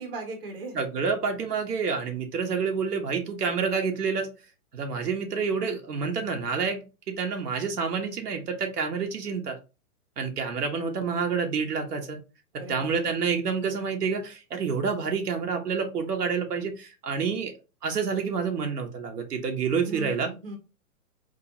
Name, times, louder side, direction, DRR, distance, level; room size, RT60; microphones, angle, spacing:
voice 1, 0.0-0.8 12.5-13.1 19.8-20.6, right 2 dB, 35° right, 3 dB, 1.3 m, -38 dB
voice 2, 0.7-4.3 4.7-9.6 10.2-12.2 12.5-17.5 17.8-20.3, right 5 dB, 85° right, 3 dB, 1.5 m, -28 dB
4.7 x 3.3 x 3.0 m, 0.29 s
hypercardioid pair, 175°, 46 cm